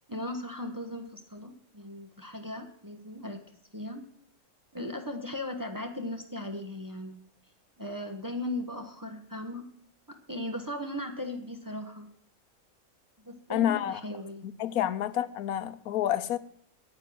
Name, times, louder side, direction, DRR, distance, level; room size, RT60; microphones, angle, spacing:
voice 1, 0.1-3.4 3.7-4.1 4.7-7.2 7.8-9.7 10.1-12.1 13.2-14.5 14.8-14.9, left 1 dB, 15° right, 0.9 m, -37 dB
voice 2, 13.5-14.0 14.4-16.4, left 11 dB, 85° left, 1.1 m, -29 dB
9.7 x 8.6 x 7.6 m
omnidirectional pair, 1.5 m